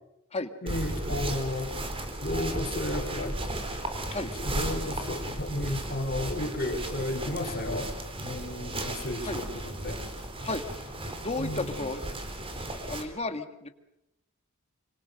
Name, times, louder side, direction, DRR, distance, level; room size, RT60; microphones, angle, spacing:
voice 1, 0.6-1.7 2.2-3.4 4.4-7.9 8.2-10.0 11.4-11.8, left 1 dB, 45° left, 2 dB, 4.4 m, -33 dB
sound 1, 0.7-13.0, right 1 dB, 25° right, 3.7 m, -35 dB
voice 2, 10.4-12.0 12.9-13.7, left 2 dB, 30° left, 8 dB, 1.8 m, -33 dB
26.0 x 26.0 x 6.6 m, 0.90 s
head